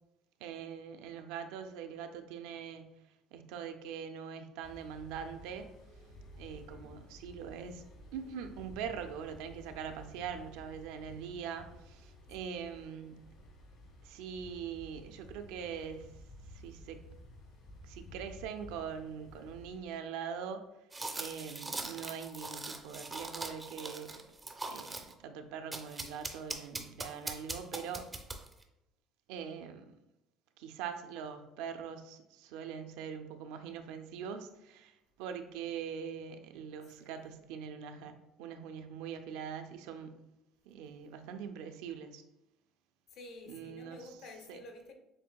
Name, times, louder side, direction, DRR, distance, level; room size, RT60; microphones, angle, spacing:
voice 1, 0.4-2.9 3.3-5.7 6.4-7.8 8.1-13.2 14.0-16.1 16.5-17.1 17.8-20.7 21.1-24.2 24.6-28.1 29.3-30.0 30.6-40.2 40.6-42.2 43.5-44.1 44.5-44.6, right 7 dB, 90° right, 0.4 m, -43 dB
sound 1, 4.6-19.8, equal, 75° left, 1.2 m, -53 dB
voice 2, 6.5-7.0 12.4-12.6 36.8-37.3 43.1-44.9, left 2 dB, 60° left, 0.8 m, -52 dB
sound 2, 20.9-25.1 25.7-28.6, right 2 dB, 15° right, 0.4 m, -41 dB
7.2 x 2.6 x 2.3 m
cardioid pair, 140°, 0 cm